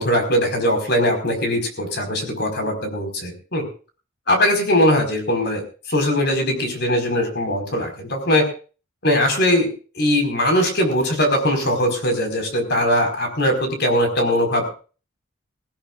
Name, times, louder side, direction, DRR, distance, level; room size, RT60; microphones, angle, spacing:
voice 1, 0.0-3.7 4.3-8.5 9.0-9.7 9.9-14.7, left 1 dB, 50° left, 4 dB, 4.8 m, -20 dB
22.0 x 16.0 x 2.5 m, 0.37 s
head